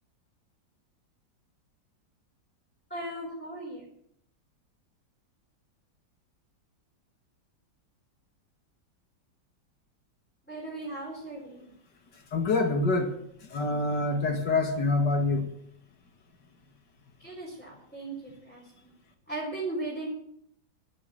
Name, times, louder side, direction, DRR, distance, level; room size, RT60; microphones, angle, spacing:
voice 1, 2.9-3.8 10.4-11.7 17.2-18.9 19.3-20.1, right 2 dB, 5° left, -4 dB, 4.5 m, -37 dB
voice 2, 12.3-13.1 13.5-15.5, left 3 dB, 65° left, 4 dB, 2.6 m, -26 dB
11.5 x 10.5 x 9.1 m, 0.71 s
omnidirectional pair, 2.0 m